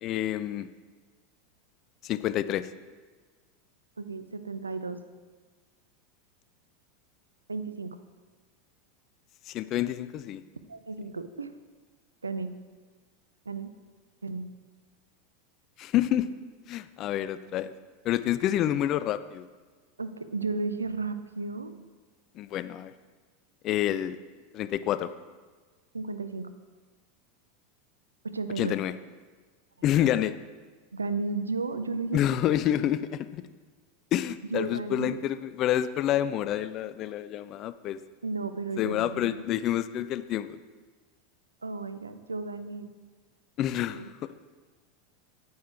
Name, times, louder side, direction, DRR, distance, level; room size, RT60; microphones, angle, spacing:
voice 1, 0.0-0.7 2.0-2.7 9.5-10.4 15.8-16.3 16.7-17.7 18.0-19.5 22.4-22.9 23.6-24.2 24.5-25.1 28.6-28.9 29.8-30.3 32.1-33.4 34.1-38.0 38.8-40.6 43.6-44.0, left 12 dB, 40° left, 14 dB, 0.5 m, -28 dB
voice 2, 4.0-5.0 7.5-8.0 10.7-11.5 12.2-12.5 13.5-13.7 14.2-14.5 20.0-21.7 25.9-26.6 28.2-28.8 30.9-32.4 34.5-35.2 38.2-39.4 41.6-42.9 43.9-44.1, right 3 dB, 80° right, 12 dB, 0.6 m, -33 dB
9.5 x 9.5 x 4.5 m, 1.4 s
figure-of-eight pair, 85°, 0 cm